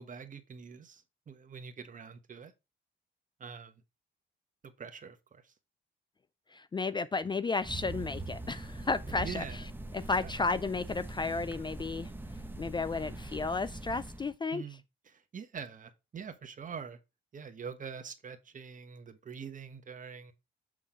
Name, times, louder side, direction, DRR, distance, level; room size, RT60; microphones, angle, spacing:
voice 1, 0.0-2.5 3.4-3.8 4.6-5.5 9.2-9.6 10.2-10.3 14.5-17.0 17.3-20.3, right 6 dB, 40° right, 1.2 m, -45 dB
voice 2, 6.5-9.6 9.9-12.1 12.6-14.6, left 4 dB, 25° left, 0.4 m, -33 dB
sound 1, 7.6-14.3, right 2 dB, 10° right, 0.9 m, -42 dB
7.5 x 3.8 x 5.0 m
cardioid pair, 90°, 20 cm